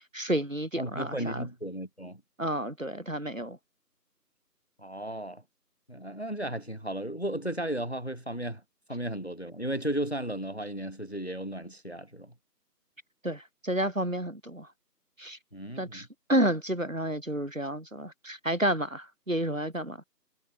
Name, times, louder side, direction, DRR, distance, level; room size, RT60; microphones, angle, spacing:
voice 1, 0.1-1.5 2.4-3.6 13.2-14.7 15.2-15.4 15.8-20.0, right 1 dB, 50° right, 2.5 m, -30 dB
voice 2, 0.8-2.2 4.8-5.4 5.9-8.6 8.9-12.3 15.5-16.1, right 1 dB, 40° left, 1.6 m, -34 dB
figure-of-eight pair, 180°, 50 cm